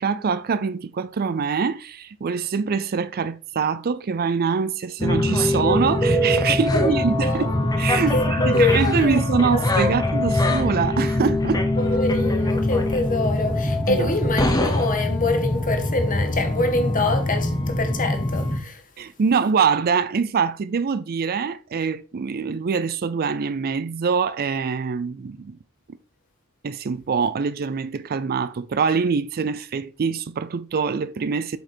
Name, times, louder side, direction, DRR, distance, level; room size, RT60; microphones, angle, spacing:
voice 1, 0.0-11.6 13.9-14.1 19.0-25.6 26.6-31.6, right 5 dB, 45° right, 0.4 m, -24 dB
sound 1, 5.0-18.6, left 1 dB, 15° left, 1.0 m, -23 dB
voice 2, 6.5-7.5 8.1-9.2 9.5-9.7 11.8-18.8, left 2 dB, 35° left, 1.5 m, -25 dB
7.9 x 4.9 x 4.4 m
head